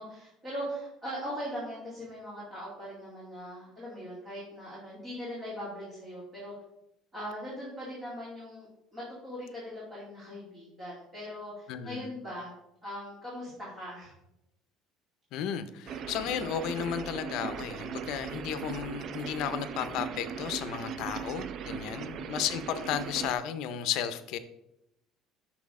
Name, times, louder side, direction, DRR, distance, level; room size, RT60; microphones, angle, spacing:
voice 1, 0.0-6.5 7.1-12.5 12.8-14.1 21.8-22.2, equal, 20° right, -8 dB, 2.4 m, -40 dB
voice 2, 11.7-12.1 15.3-24.4, left 9 dB, 60° left, 10 dB, 0.6 m, -34 dB
sound 1, 15.9-23.3, right 7 dB, 40° right, 0.4 m, -38 dB
6.1 x 6.0 x 3.6 m, 0.85 s
cardioid pair, 160°, 0 cm